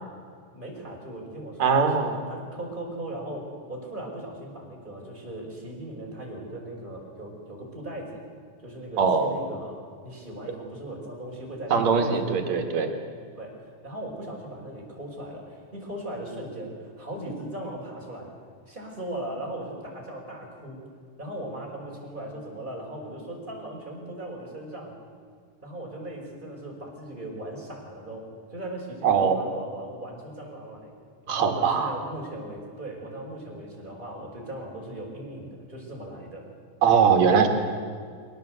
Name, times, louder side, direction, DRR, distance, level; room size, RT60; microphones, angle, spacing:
voice 1, 0.5-8.2 8.6-9.7 10.0-12.6 13.3-18.3 18.7-20.8 21.2-24.9 25.6-30.9 31.3-36.4, right 1 dB, 15° right, -2 dB, 5.3 m, -38 dB
voice 2, 1.6-2.2 9.0-9.3 11.7-12.9 29.0-29.4 31.3-31.9 36.8-37.5, right 6 dB, 65° right, 5 dB, 3.0 m, -21 dB
23.0 x 18.0 x 8.1 m, 2.1 s
omnidirectional pair, 3.5 m